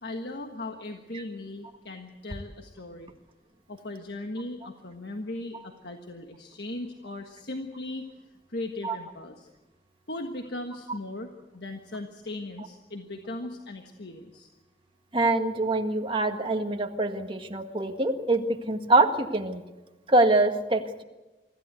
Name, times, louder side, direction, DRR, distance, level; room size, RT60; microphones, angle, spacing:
voice 1, 0.0-3.1 3.7-8.1 8.5-9.5 10.1-14.5, left 2 dB, 65° left, 4 dB, 1.5 m, -38 dB
voice 2, 15.1-19.6 20.1-21.0, right 2 dB, 30° right, 5 dB, 1.7 m, -24 dB
25.0 x 15.0 x 8.2 m, 1.1 s
head